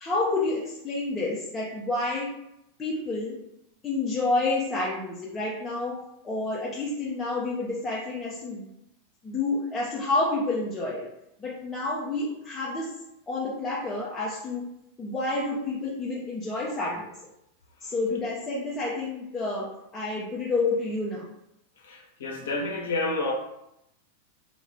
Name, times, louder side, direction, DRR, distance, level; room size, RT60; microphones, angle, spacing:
voice 1, 0.0-2.3 2.8-3.4 3.8-6.0 6.2-8.6 9.2-11.0 11.4-12.9 13.3-14.7 15.0-17.1 17.8-19.7 19.9-21.3, left 2 dB, 15° left, -6 dB, 0.5 m, -29 dB
voice 2, 21.8-23.3, left 2 dB, 60° left, 1 dB, 0.6 m, -29 dB
2.3 x 2.2 x 3.4 m, 0.81 s
figure-of-eight pair, 90°, 0 cm